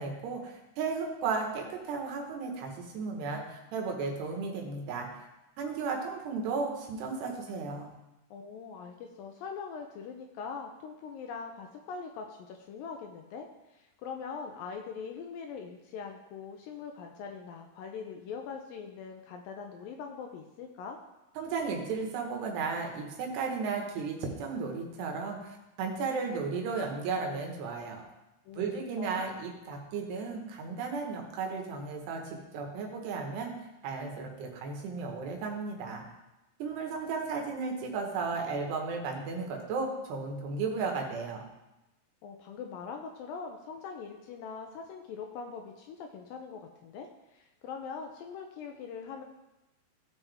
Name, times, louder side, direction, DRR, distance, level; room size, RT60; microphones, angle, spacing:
voice 1, 0.0-5.3 5.6-7.9 21.4-28.0 28.5-33.5 33.8-36.0 36.6-41.4, right 4 dB, 90° right, 2 dB, 3.5 m, -34 dB
voice 2, 8.3-21.0 28.5-28.7 29.0-29.3 42.2-49.2, left 5 dB, 80° left, 3 dB, 2.1 m, -42 dB
16.0 x 5.9 x 3.5 m, 0.97 s
omnidirectional pair, 4.7 m